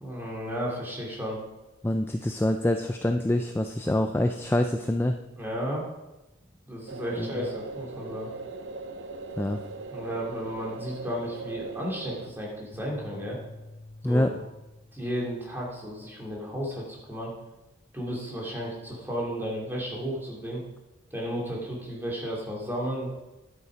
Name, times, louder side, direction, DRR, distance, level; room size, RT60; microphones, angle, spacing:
voice 1, 0.0-1.4 3.8-3.9 5.4-5.9 6.7-8.3 9.9-13.4 14.0-14.3 14.9-17.3 17.9-20.6 21.1-23.1, equal, 10° right, -3 dB, 2.6 m, -33 dB
voice 2, 1.8-5.2 7.2-7.4 9.4-9.6 14.0-14.3, left 1 dB, 10° left, 5 dB, 0.4 m, -25 dB
sound 1, 6.9-12.3, right 3 dB, 65° right, 0.7 m, -39 dB
sound 2, 12.7-15.2, left 2 dB, 30° left, 0.8 m, -47 dB
11.0 x 8.4 x 5.1 m, 1.0 s
head